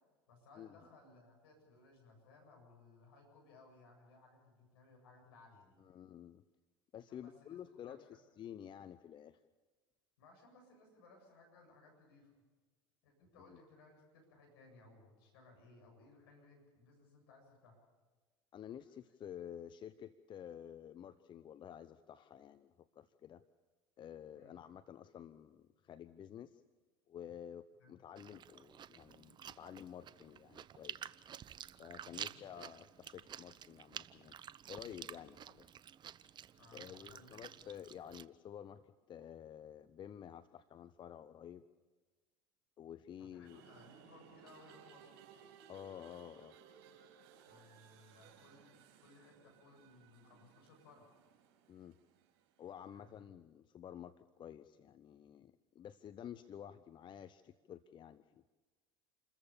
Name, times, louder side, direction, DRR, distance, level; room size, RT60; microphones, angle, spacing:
voice 1, 0.3-5.8 7.1-8.2 10.2-12.4 13.0-17.8 24.3-24.6 27.8-28.0 32.1-32.5 36.6-37.5 43.2-45.1 47.5-51.1 52.9-53.3, left 3 dB, 75° left, 2 dB, 7.9 m, -62 dB
voice 2, 5.8-6.4 6.9-8.0 8.4-9.4 13.5-13.6 18.5-23.4 24.0-26.6 27.1-31.1 31.8-34.4 34.7-35.6 36.7-38.8 39.1-41.6 42.8-43.6 45.7-46.5 51.7-52.0 52.6-58.4, left 9 dB, 40° left, 14 dB, 0.7 m, -51 dB
Chewing mastication, 28.2-38.3, right 9 dB, 35° right, 0.7 m, -51 dB
sound 1, 43.4-52.9, right 8 dB, 65° right, 4.6 m, -62 dB
28.0 x 14.5 x 7.1 m, 1.3 s
hypercardioid pair, 75°, 13 cm